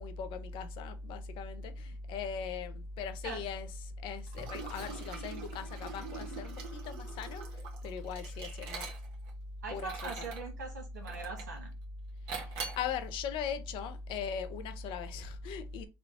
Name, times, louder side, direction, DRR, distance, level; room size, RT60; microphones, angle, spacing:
voice 1, 0.0-7.4 7.8-8.9 9.7-10.1 12.4-15.9, left 5 dB, 60° left, 0.7 m, -39 dB
Liquid, 4.3-9.3 9.8-10.5 11.1-11.6 12.3-12.9, right 5 dB, 65° right, 1.2 m, -44 dB
voice 2, 9.6-11.7, right 4 dB, 90° right, 1.3 m, -41 dB
3.7 x 2.3 x 3.4 m
hypercardioid pair, 70°, 9 cm